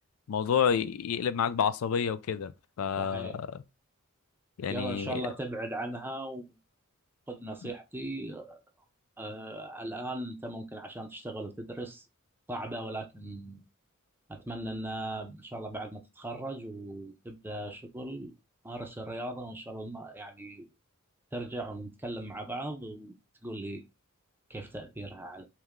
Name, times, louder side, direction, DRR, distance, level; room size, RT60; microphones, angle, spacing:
voice 1, 0.3-2.5 2.8-3.6 4.6-5.2 7.6-7.7, left 7 dB, 85° left, 0.4 m, -29 dB
voice 2, 3.0-3.4 4.7-6.6 7.3-8.6 9.2-12.0 12.5-13.6 14.3-18.3 18.6-20.7 21.3-23.2 23.4-23.8 24.5-25.5, right 1 dB, 10° right, 0.6 m, -38 dB
3.3 x 3.1 x 3.6 m
head